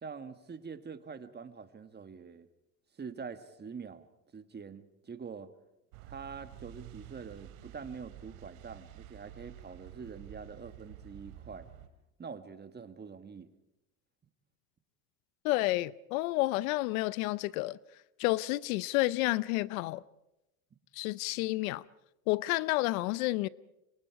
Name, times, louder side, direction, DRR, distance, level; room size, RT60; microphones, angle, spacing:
voice 1, 0.0-2.5 3.0-4.1 4.3-5.5 6.1-11.7 12.2-13.5, right 5 dB, 25° right, 1.8 m, -45 dB
sound 1, 5.9-11.9, right 11 dB, 85° right, 2.7 m, -50 dB
voice 2, 15.4-17.8 18.2-20.0 20.9-21.8 22.3-23.5, left 19 dB, 90° left, 0.8 m, -30 dB
27.5 x 24.5 x 4.8 m
supercardioid pair, 105°, 41 cm